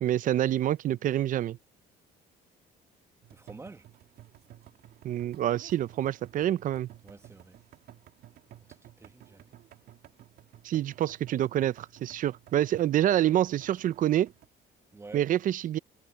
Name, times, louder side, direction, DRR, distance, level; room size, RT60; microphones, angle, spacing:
voice 1, 0.0-1.6 5.0-6.9 10.6-14.3 15.1-15.8, right 12 dB, 50° right, 0.5 m, -27 dB
sound 1, 3.2-14.5, right 12 dB, 70° right, 2.9 m, -54 dB
voice 2, 3.3-3.9 7.0-7.6 8.7-9.6 14.9-15.3, right 3 dB, 15° right, 1.6 m, -49 dB
cardioid pair, 110°, 17 cm